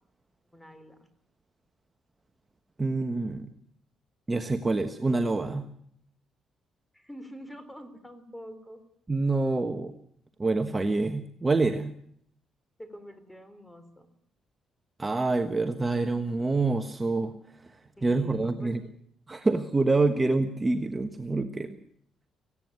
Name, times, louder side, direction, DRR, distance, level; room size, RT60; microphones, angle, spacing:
voice 1, 0.5-1.0 6.9-8.8 12.8-14.1 18.0-18.8, equal, 5° left, 11 dB, 3.8 m, -46 dB
voice 2, 2.8-3.5 4.3-5.7 9.1-9.9 10.4-11.9 15.0-18.8 19.3-21.8, right 3 dB, 20° right, 7 dB, 1.4 m, -27 dB
18.5 x 16.0 x 9.6 m, 0.69 s
cardioid pair, 90°, 0 cm